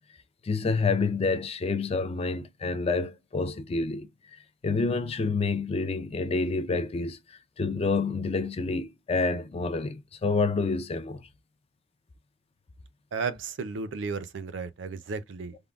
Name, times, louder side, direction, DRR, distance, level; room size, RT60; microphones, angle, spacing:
voice 1, 0.4-4.1 4.6-11.2, left 4 dB, 30° left, 0.4 m, -28 dB
voice 2, 13.1-15.6, right 4 dB, 70° right, 0.5 m, -34 dB
3.5 x 2.1 x 2.3 m
head